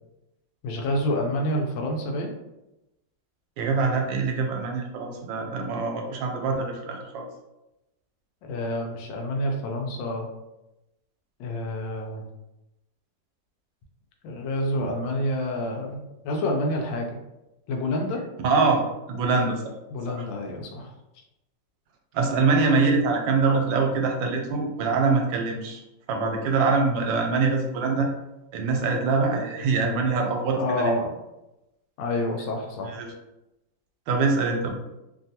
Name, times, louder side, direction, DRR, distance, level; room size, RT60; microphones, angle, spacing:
voice 1, 0.6-2.3 8.4-10.3 11.4-12.2 14.2-17.2 17.7-18.2 19.9-20.9 30.5-31.2 32.0-32.9, left 1 dB, 90° left, 2 dB, 1.3 m, -28 dB
voice 2, 3.6-7.2 18.4-18.8 19.1-19.7 20.1-20.2 22.1-25.8 26.1-28.1 28.5-30.9 32.9-33.1 34.1-34.7, right 4 dB, 85° right, 2 dB, 1.3 m, -24 dB
3.2 x 2.2 x 2.7 m, 0.93 s
omnidirectional pair, 2.0 m